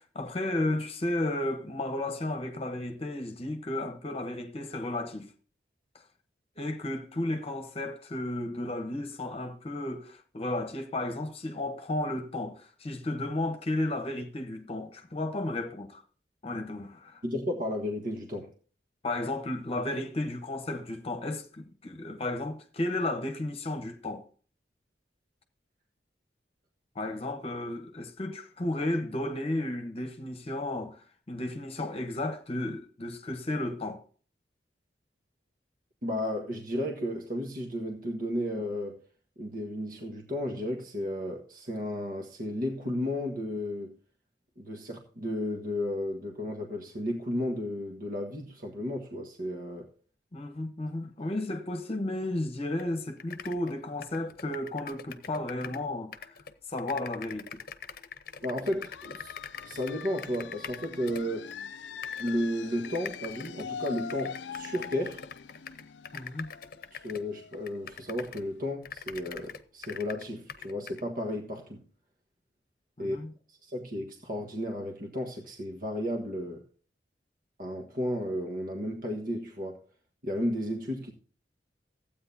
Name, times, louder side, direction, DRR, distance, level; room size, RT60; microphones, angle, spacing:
voice 1, 0.0-5.3 6.6-16.0 16.4-17.2 19.0-24.2 26.9-34.0 50.3-56.4 56.7-57.6 66.1-66.5 73.0-73.3, left 1 dB, 35° left, 1.0 m, -33 dB
voice 2, 17.2-18.5 36.0-39.0 39.4-43.9 44.6-49.9 58.4-59.3 59.6-61.5 62.2-65.2 66.9-71.8 73.0-73.2 73.6-76.6 77.6-79.8 80.2-81.1, left 1 dB, 55° right, 1.4 m, -33 dB
sound 1, 52.8-52.9 53.2-55.9 56.1-61.6 62.0-62.3 62.8-68.5 68.8-71.0, left 7 dB, 55° left, 0.8 m, -44 dB
sound 2, 58.8-68.2, left 6 dB, 90° left, 0.5 m, -43 dB
15.0 x 8.7 x 2.7 m
head